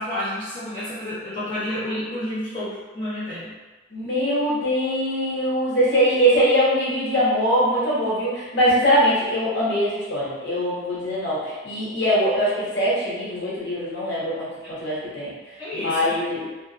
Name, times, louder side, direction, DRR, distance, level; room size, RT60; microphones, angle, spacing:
voice 1, 0.0-3.5 14.6-14.7 15.6-16.2, left 1 dB, 25° left, -12 dB, 0.9 m, -30 dB
voice 2, 3.9-15.3 15.7-16.5, equal, 65° left, -8 dB, 0.9 m, -22 dB
2.4 x 2.0 x 2.7 m, 1.2 s
head